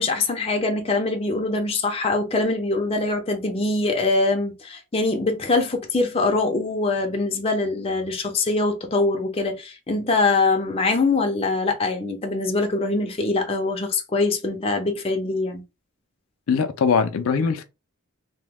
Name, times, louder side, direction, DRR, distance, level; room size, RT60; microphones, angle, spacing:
voice 1, 0.0-15.6, left 3 dB, 25° left, 0.5 m, -23 dB
voice 2, 16.5-17.6, left 5 dB, 75° left, 0.4 m, -21 dB
2.9 x 2.1 x 3.4 m
head